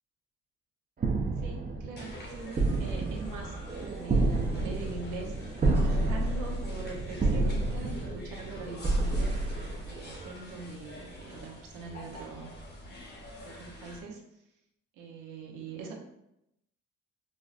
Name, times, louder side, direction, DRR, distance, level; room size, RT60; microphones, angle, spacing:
sound 1, 1.0-10.3, right 2 dB, 30° right, 0.5 m, -30 dB
voice 1, 1.4-9.6 9.9-12.5 13.1-14.2 15.0-16.0, right 4 dB, 90° right, 1 dB, 0.7 m, -43 dB
sound 2, 2.0-14.0, left 1 dB, 35° left, 0.8 m, -46 dB
5.2 x 2.0 x 2.4 m, 0.84 s
cardioid pair, 90°, 30 cm